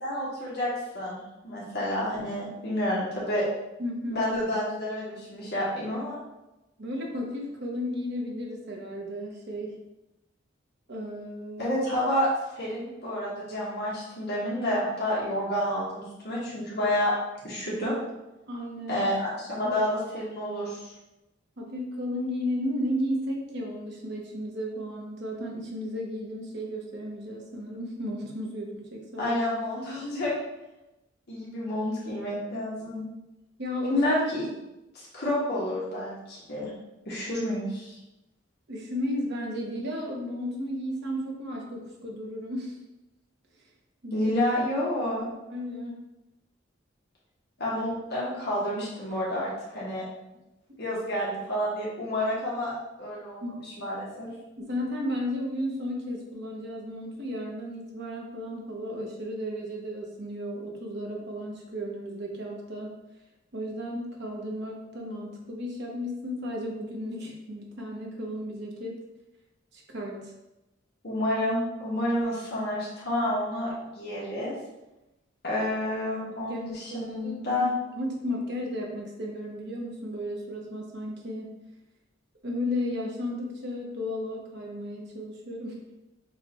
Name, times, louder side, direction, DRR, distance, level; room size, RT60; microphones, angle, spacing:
voice 1, 0.0-3.4 4.1-6.2 11.6-17.1 17.4-18.0 18.9-20.9 29.2-30.4 31.3-33.0 33.9-34.5 34.9-36.7 37.0-38.0 44.1-45.3 47.6-50.0 50.8-54.3 71.0-74.6 75.4-77.7, left 1 dB, 60° left, -6 dB, 1.4 m, -29 dB
voice 2, 3.8-4.2 6.8-9.8 10.9-11.7 18.5-19.1 19.6-19.7 21.6-29.4 33.6-34.0 38.7-42.8 44.0-44.3 45.5-46.0 53.4-53.6 54.6-62.9 63.5-69.0 69.7-70.3 76.2-77.7 77.9-81.5 82.4-85.8, left 1 dB, 60° right, -1 dB, 1.0 m, -34 dB
7.2 x 2.5 x 3.0 m, 0.97 s
head